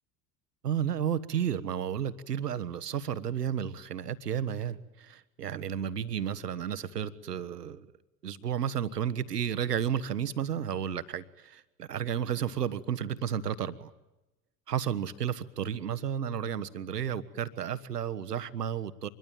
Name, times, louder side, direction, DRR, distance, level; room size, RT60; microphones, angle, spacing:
voice 1, 0.6-7.8 8.2-13.9 14.7-19.1, right 9 dB, 80° right, 13 dB, 1.1 m, -32 dB
25.5 x 22.0 x 9.0 m, 0.99 s
figure-of-eight pair, 70°, 47 cm